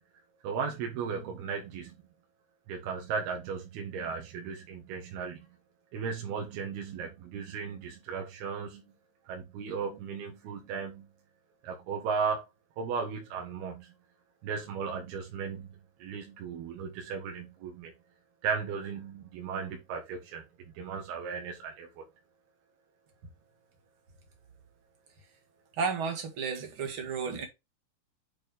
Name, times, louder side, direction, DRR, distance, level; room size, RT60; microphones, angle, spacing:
voice 1, 0.4-2.0 2.7-5.4 5.9-8.8 9.3-11.1 11.6-12.4 12.8-13.9 14.4-17.9 18.4-20.5 20.8-22.0, right 6 dB, 80° right, 3.4 m, -36 dB
voice 2, 25.7-27.5, right 5 dB, 45° right, 2.0 m, -32 dB
8.7 x 4.4 x 3.4 m
omnidirectional pair, 4.4 m